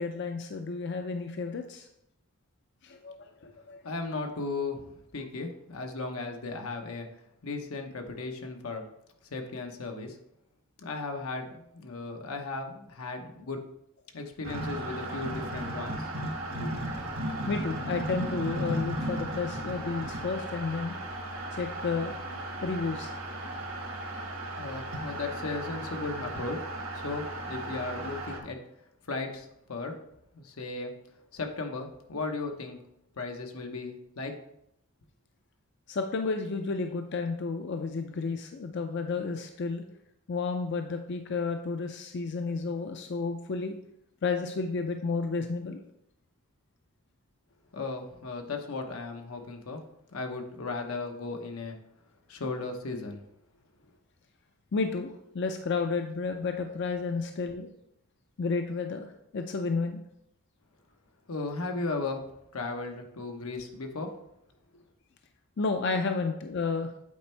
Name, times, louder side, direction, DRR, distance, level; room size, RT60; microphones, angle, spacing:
voice 1, 0.0-1.9 2.8-3.3 3.7-3.8 17.5-21.0 21.5-22.2 22.6-23.1 35.9-39.8 40.3-43.8 44.2-45.8 54.7-57.7 58.4-60.0 65.6-66.9, left 4 dB, 55° left, 5 dB, 0.4 m, -31 dB
voice 2, 3.8-7.1 7.4-8.8 9.3-10.2 10.8-13.6 14.1-16.1 16.5-16.8 24.6-26.6 26.9-28.6 29.1-30.0 30.3-30.9 31.3-32.8 33.2-34.3 47.7-49.8 50.1-51.8 52.3-53.2 61.3-64.1, left 3 dB, 90° left, 4 dB, 0.9 m, -36 dB
sound 1, 14.4-28.4, right 1 dB, 70° right, 1.4 m, -35 dB
8.4 x 4.4 x 3.3 m, 0.78 s
head